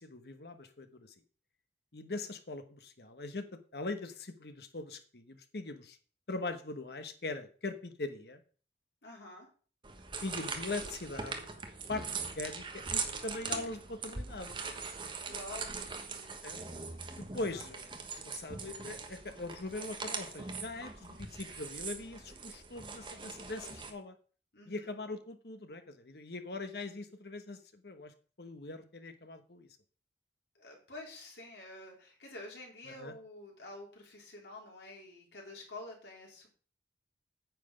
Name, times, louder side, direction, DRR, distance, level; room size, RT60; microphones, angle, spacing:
voice 1, 0.0-1.1 1.9-6.0 6.3-8.4 10.2-11.5 11.9-14.6 16.4-16.6 17.1-17.9 18.2-24.2 24.7-29.7 32.9-33.1, left 2 dB, 65° left, 9 dB, 1.1 m, -41 dB
voice 2, 9.0-9.5 15.3-16.4 17.3-17.6 23.4-23.7 24.5-24.9 30.6-36.5, left 2 dB, 80° left, -1 dB, 3.7 m, -49 dB
sound 1, 9.8-23.9, right 4 dB, 30° right, 1.2 m, -41 dB
9.3 x 7.5 x 5.1 m, 0.41 s
head